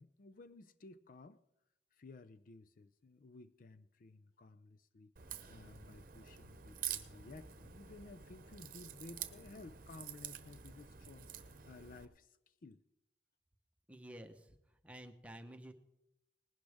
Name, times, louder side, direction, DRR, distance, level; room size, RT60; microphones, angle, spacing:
voice 1, 0.0-1.4 1.9-5.1 5.5-12.8, left 3 dB, 50° left, 12 dB, 0.5 m, -55 dB
Crack, 5.2-12.1, right 10 dB, 50° right, 0.9 m, -48 dB
voice 2, 13.9-15.7, right 1 dB, 5° right, 6 dB, 1.0 m, -52 dB
20.0 x 11.5 x 3.5 m, 0.85 s
head